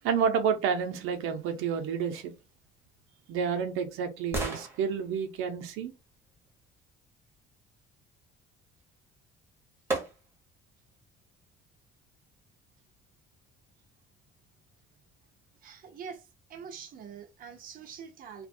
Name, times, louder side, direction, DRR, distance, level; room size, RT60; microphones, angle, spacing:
voice 1, 0.0-2.3 3.3-5.9, right 7 dB, 85° right, 0.6 m, -29 dB
sound 1, 2.8-6.9 9.0-9.1 9.9-10.6 11.1-11.2, right 2 dB, 10° right, 0.8 m, -39 dB
voice 2, 15.6-18.5, right 7 dB, 45° right, 0.5 m, -45 dB
2.4 x 2.2 x 2.6 m
cardioid pair, 145°, 21 cm